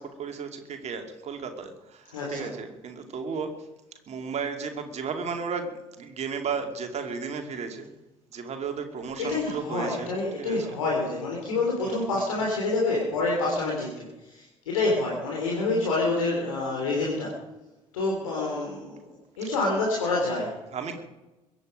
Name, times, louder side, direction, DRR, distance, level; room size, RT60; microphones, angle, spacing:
voice 1, 0.0-3.5 4.1-5.7 6.0-7.9 8.3-10.1 10.4-10.7 11.8-12.3 20.7-21.0, right 5 dB, 40° right, 5 dB, 2.5 m, -34 dB
voice 2, 2.1-2.5 9.3-17.3 17.9-19.0 19.4-20.6, left 3 dB, 70° left, -2 dB, 3.3 m, -27 dB
22.0 x 9.6 x 5.1 m, 1.0 s
figure-of-eight pair, 55°, 17 cm